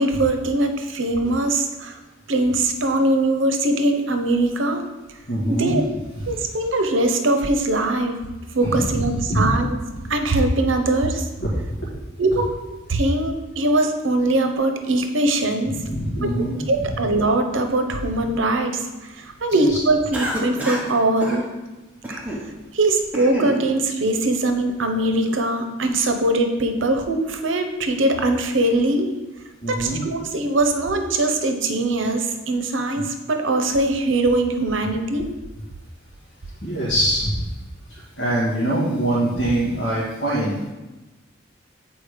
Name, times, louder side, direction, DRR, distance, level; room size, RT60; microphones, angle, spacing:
voice 1, 0.0-2.0 2.3-4.9 5.5-5.8 6.3-8.2 8.5-9.8 10.1-11.2 12.2-15.8 16.7-21.5 22.7-29.1 29.7-35.3, right 2 dB, 80° right, 6 dB, 0.8 m, -21 dB
voice 2, 5.3-5.7 6.2-6.4 8.6-8.8 9.3-9.5 11.4-11.5 11.8-11.9 15.8-17.0 19.5-19.8 29.6-30.0 36.6-37.4 37.9-40.7, right 1 dB, 55° left, -8 dB, 1.9 m, -24 dB
Cough, 20.1-20.9 21.2-21.4 22.0-22.5 22.9-23.6, equal, 10° right, 1.1 m, -28 dB
8.2 x 4.2 x 5.0 m, 1.1 s
head